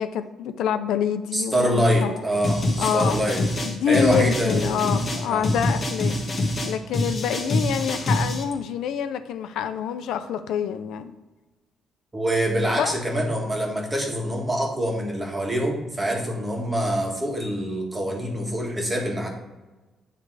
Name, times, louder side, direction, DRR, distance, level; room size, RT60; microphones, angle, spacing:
voice 1, 0.0-2.2 2.8-3.2 3.7-6.2 6.6-11.1 12.7-12.9, left 8 dB, 85° left, 10 dB, 0.5 m, -26 dB
voice 2, 1.3-3.4 3.9-4.9 5.2-5.5 12.1-19.3, equal, 20° right, 0 dB, 1.6 m, -25 dB
sound 1, 2.4-8.4, left 1 dB, 30° left, 1.3 m, -25 dB
9.7 x 3.3 x 4.8 m, 1.2 s
cardioid pair, 115°, 0 cm